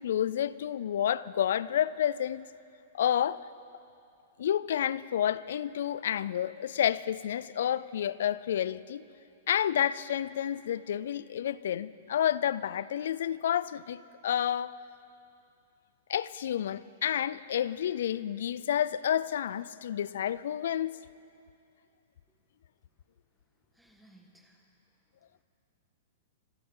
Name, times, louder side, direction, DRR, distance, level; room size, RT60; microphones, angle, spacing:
voice 1, 0.0-2.5 2.9-3.4 4.4-9.0 9.5-14.7 16.1-20.9, left 10 dB, 75° left, 0.4 m, -30 dB
voice 2, 23.7-24.7 25.3-25.4, right 1 dB, ahead, 1.6 m, -61 dB
26.0 x 14.0 x 3.8 m
hypercardioid pair, 140°, 0 cm